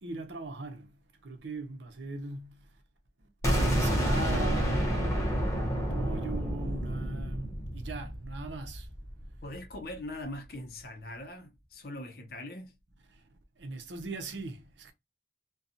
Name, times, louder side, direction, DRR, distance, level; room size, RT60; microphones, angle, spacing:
voice 1, 0.0-2.7 3.2-3.3 3.6-8.9 13.1-13.2 13.6-14.9, right 3 dB, 80° right, 0.7 m, -40 dB
sound 1, 3.4-9.2, equal, 15° left, 0.7 m, -29 dB
voice 2, 9.4-12.7, left 1 dB, 55° left, 0.6 m, -41 dB
2.6 x 2.2 x 2.5 m
head